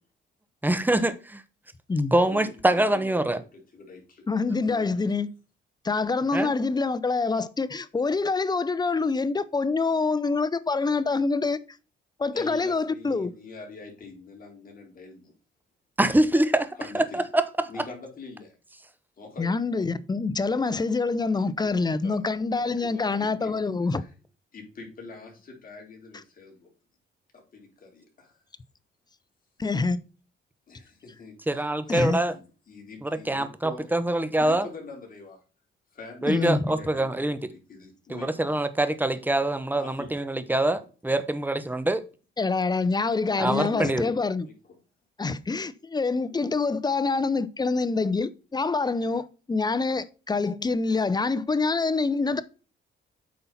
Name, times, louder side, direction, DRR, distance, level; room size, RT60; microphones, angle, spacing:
voice 1, 0.6-1.4 2.1-3.4 6.3-6.5 16.0-17.7 31.5-32.3 33.0-34.7 36.2-37.4 38.1-42.0 43.4-44.0, right 1 dB, 10° right, 1.0 m, -24 dB
voice 2, 2.1-4.3 4.6-5.0 12.3-15.3 16.7-17.3 17.7-18.6 19.2-19.8 21.2-23.5 23.8-24.1 24.5-26.7 27.3-28.3 30.7-33.9 34.4-35.4 35.9-38.5 39.8-40.2 43.3-44.8, left 3 dB, 45° left, 4.1 m, -44 dB
voice 3, 4.3-5.3 5.8-11.6 12.2-13.3 19.4-24.0 29.6-30.0 31.9-32.2 36.3-36.7 42.4-44.5 45.2-52.4, left 4 dB, 20° left, 0.8 m, -26 dB
8.6 x 5.5 x 4.2 m
cardioid pair, 90°, 20 cm